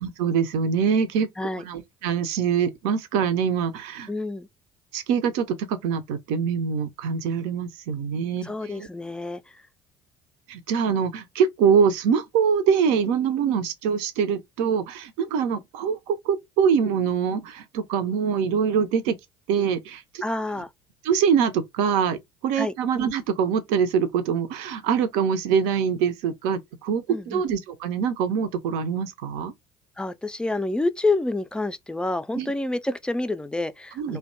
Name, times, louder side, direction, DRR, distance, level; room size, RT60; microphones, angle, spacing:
voice 1, 0.0-1.3 1.6-4.1 4.9-8.9 10.5-19.2 19.5-20.2 21.0-29.5 32.3-32.5 34.0-34.2, right 7 dB, 65° right, 0.5 m, -24 dB
voice 2, 4.1-4.5 8.4-9.6 20.2-20.7 22.6-22.7 27.1-27.4 30.0-34.2, left 2 dB, 5° left, 0.3 m, -28 dB
2.6 x 2.2 x 2.5 m
hypercardioid pair, 60°, 12 cm